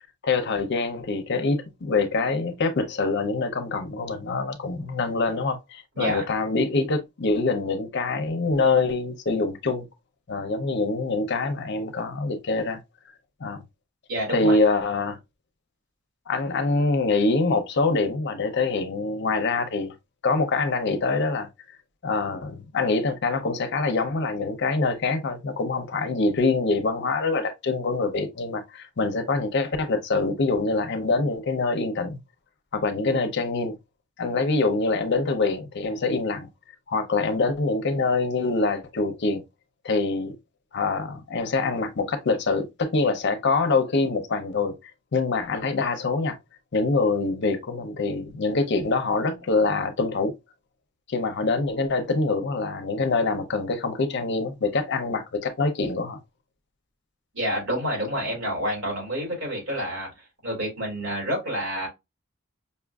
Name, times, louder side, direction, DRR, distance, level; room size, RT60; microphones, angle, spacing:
voice 1, 0.2-9.9 10.3-12.8 13.4-13.6 14.3-15.2 16.3-19.9 20.2-21.5 22.0-32.2 32.7-33.8 34.2-36.5 36.9-39.4 39.8-40.4 40.7-44.7 45.1-46.4 46.7-50.4 51.1-56.2, left 3 dB, 60° left, 0.6 m, -25 dB
voice 2, 14.1-14.6 57.3-60.1 60.4-61.9, equal, 70° right, 2.6 m, -28 dB
5.4 x 2.5 x 2.3 m
head